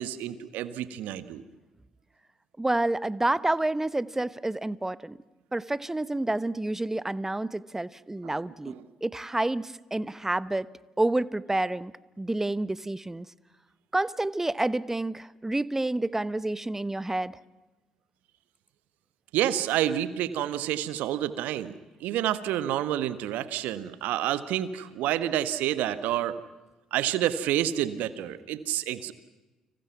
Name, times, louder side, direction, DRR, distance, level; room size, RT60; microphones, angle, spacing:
voice 1, 0.0-1.4 8.2-8.3 19.3-21.7 22.0-26.4 26.9-29.1, right 12 dB, 65° right, 13 dB, 1.5 m, -29 dB
voice 2, 2.6-5.2 5.5-10.7 11.0-11.9 12.2-13.3 13.9-17.4, right 2 dB, 15° right, 18 dB, 1.1 m, -29 dB
30.0 x 26.0 x 6.0 m, 1.1 s
hypercardioid pair, 50°, 3 cm